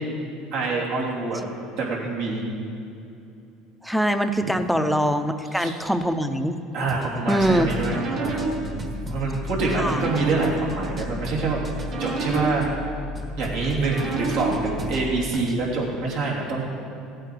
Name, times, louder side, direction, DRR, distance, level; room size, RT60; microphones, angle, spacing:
voice 1, 0.5-1.4 1.8-2.4 4.4-4.5 5.5-5.7 6.7-12.6 13.3-16.9, right 3 dB, 70° right, -4 dB, 3.1 m, -26 dB
voice 2, 3.8-6.6 7.3-7.7 9.8-10.0, equal, ahead, 9 dB, 0.7 m, -23 dB
sound 1, 6.9-12.8 13.1-15.6, right 2 dB, 30° right, 1.4 m, -38 dB
sound 2, 7.4-15.3, right 1 dB, 50° right, 2.2 m, -31 dB
15.0 x 8.8 x 4.6 m, 2.6 s
supercardioid pair, 110°, 0 cm